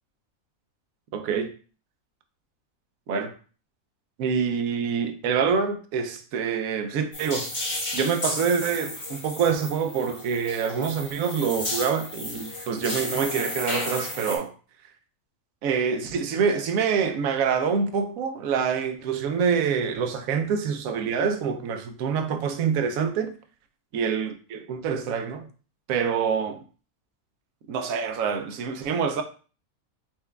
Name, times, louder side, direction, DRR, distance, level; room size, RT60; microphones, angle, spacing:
voice 1, 1.1-1.5 3.1-3.3 4.2-7.5 7.9-14.5 15.6-23.3 23.9-25.5 25.9-26.6 27.7-29.2, right 6 dB, 75° right, 1.0 m, -26 dB
sound 1, 7.1-14.4, left 1 dB, 40° left, 1.7 m, -33 dB
4.4 x 3.4 x 2.2 m
omnidirectional pair, 1.5 m